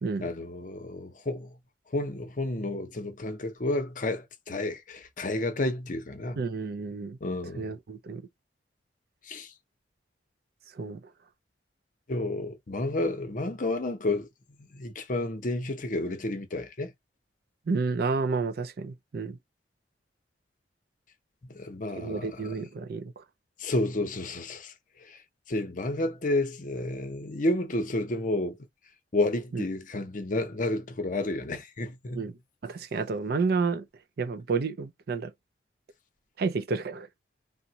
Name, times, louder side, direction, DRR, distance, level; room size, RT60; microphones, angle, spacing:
voice 1, 0.2-1.6 1.9-6.5 7.2-7.7 9.2-9.5 12.1-14.3 14.6-16.9 21.5-22.6 23.6-24.7 25.0-28.6 29.1-32.3, left 2 dB, 45° left, 0.7 m, -31 dB
voice 2, 6.4-7.2 7.6-8.3 10.7-11.0 17.7-19.4 22.0-23.2 29.5-29.6 32.1-32.3 32.6-33.9 34.2-35.3 36.4-37.1, right 4 dB, 60° right, 0.4 m, -30 dB
3.7 x 2.1 x 2.8 m
head